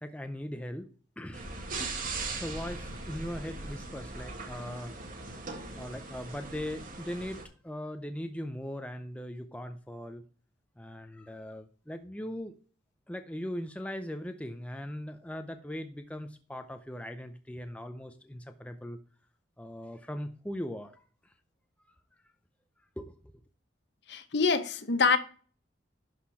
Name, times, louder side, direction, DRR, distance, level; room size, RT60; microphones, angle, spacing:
voice 1, 0.0-0.9 1.2-1.5 2.4-4.9 5.7-10.2 10.8-12.6 13.1-19.0 19.6-21.3 23.0-23.1, equal, 5° left, 0.5 m, -39 dB
sound 1, 1.3-7.4, right 3 dB, 45° right, 1.7 m, -39 dB
voice 2, 24.1-25.2, left 4 dB, 60° left, 0.8 m, -25 dB
11.5 x 4.3 x 4.7 m
head